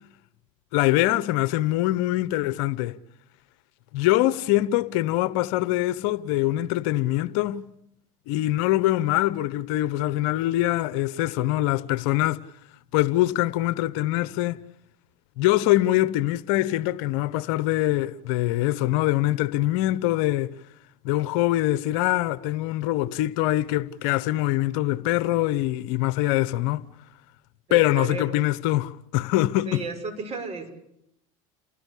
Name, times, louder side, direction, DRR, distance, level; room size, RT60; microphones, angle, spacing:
voice 1, 0.7-3.0 3.9-7.6 8.3-12.4 12.9-14.6 15.4-20.5 21.0-26.8 27.7-29.8, left 16 dB, 65° left, 1.0 m, -23 dB
voice 2, 27.7-28.4 29.7-30.7, right 4 dB, 35° right, 6.6 m, -33 dB
29.0 x 18.5 x 8.4 m
hypercardioid pair, 100°, 18 cm